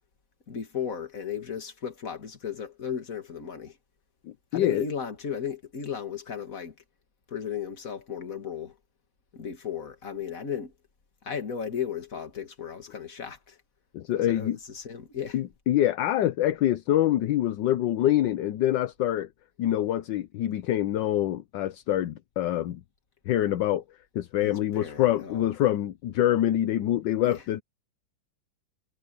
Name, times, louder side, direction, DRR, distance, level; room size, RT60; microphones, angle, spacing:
voice 1, 0.5-3.8 4.5-6.8 7.3-8.8 9.3-10.7 11.2-13.6 14.2-15.4 24.4-25.5 27.2-27.4, left 7 dB, 45° left, 2.4 m, -35 dB
voice 2, 4.2-4.9 13.9-14.6 15.3-19.3 19.6-22.8 23.3-23.8 24.1-27.6, left 12 dB, 70° left, 1.4 m, -25 dB
omnidirectional pair, 2.1 m